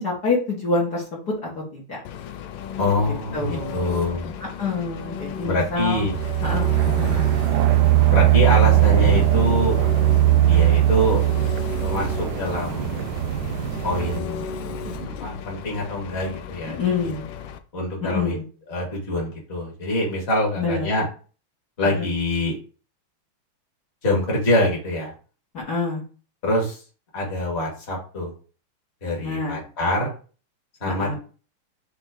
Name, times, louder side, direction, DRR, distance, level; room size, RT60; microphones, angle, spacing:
voice 1, 0.0-2.0 3.3-3.8 4.6-6.1 6.4-6.7 6.9-7.3 16.8-17.2 18.0-18.4 20.6-20.9 21.9-22.1 25.7-26.0 29.2-29.6 30.8-31.1, left 4 dB, 50° left, -5 dB, 2.3 m, -26 dB
Engine, 2.0-17.6, left 8 dB, 75° left, 1.2 m, -35 dB
voice 2, 2.8-4.3 5.4-6.2 6.8-7.2 8.1-9.8 10.4-11.2 11.8-13.0 13.8-14.5 15.2-16.8 17.7-18.4 18.7-21.1 21.8-22.6 24.0-25.1 26.4-26.8 27.1-28.3 29.0-30.1 30.8-31.1, left 1 dB, 30° left, -2 dB, 2.2 m, -25 dB
sound 1, 5.9-14.2, right 13 dB, 90° right, 0.9 m, -20 dB
sound 2, 8.7-15.2, right 8 dB, 70° right, 1.9 m, -37 dB
5.3 x 3.9 x 4.9 m, 0.38 s
omnidirectional pair, 2.4 m